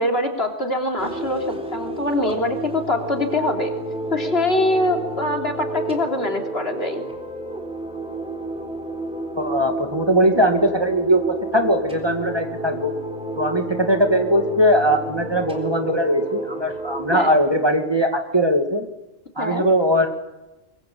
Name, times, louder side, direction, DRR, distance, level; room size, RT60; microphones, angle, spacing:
voice 1, 0.0-3.7 4.1-7.0 17.1-17.3 19.4-19.7, left 1 dB, 65° left, 3 dB, 3.6 m, -23 dB
sound 1, 1.0-17.4, right 1 dB, 5° right, 3.8 m, -31 dB
voice 2, 9.4-11.2 11.5-12.9 13.4-18.9 19.4-20.1, equal, 20° right, 5 dB, 2.2 m, -20 dB
24.0 x 22.0 x 8.6 m, 1.0 s
omnidirectional pair, 1.1 m